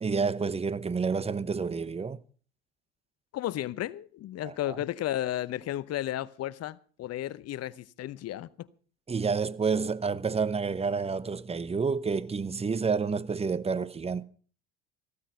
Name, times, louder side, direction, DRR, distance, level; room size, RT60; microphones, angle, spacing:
voice 1, 0.0-2.2 4.4-4.8 9.1-14.2, right 5 dB, 20° right, 0.9 m, -29 dB
voice 2, 3.3-8.7, left 13 dB, 50° left, 0.8 m, -33 dB
15.0 x 13.5 x 5.7 m
hypercardioid pair, 70°, 32 cm